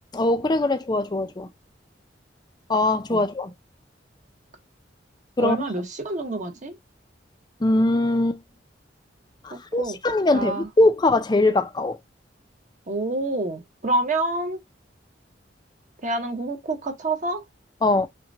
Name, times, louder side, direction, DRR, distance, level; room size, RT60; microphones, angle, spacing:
voice 1, 0.1-1.5 2.7-3.5 5.4-5.6 7.6-8.4 9.4-12.0 17.8-18.1, left 2 dB, 25° left, 0.5 m, -21 dB
voice 2, 5.4-6.8 9.5-10.0 10.3-10.7 12.9-14.6 16.0-17.4, right 2 dB, 45° right, 1.1 m, -27 dB
5.8 x 2.3 x 2.7 m
head